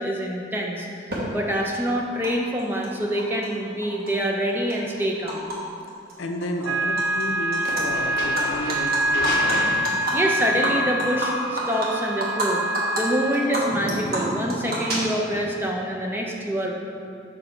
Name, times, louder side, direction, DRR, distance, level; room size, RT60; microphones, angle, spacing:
voice 1, 0.0-5.5 10.1-12.6 12.9-16.7, equal, 10° right, 0 dB, 0.5 m, -26 dB
Animal, 1.1-1.2 2.2-2.3 2.6-3.5 3.8-5.6 5.9-6.1 6.4-7.2 7.5-7.8 8.2-12.5 12.7-13.0 13.3-15.4, right 1 dB, 50° right, 1.3 m, -29 dB
sound 1, 5.2-5.4 7.7-10.6, left 1 dB, 50° left, 0.8 m, -32 dB
voice 2, 6.2-9.7, left 1 dB, 85° left, 4 dB, 0.6 m, -32 dB
sound 2, 6.7-13.5, right 1 dB, 70° right, 0.3 m, -26 dB
6.3 x 4.8 x 4.4 m, 2.4 s
head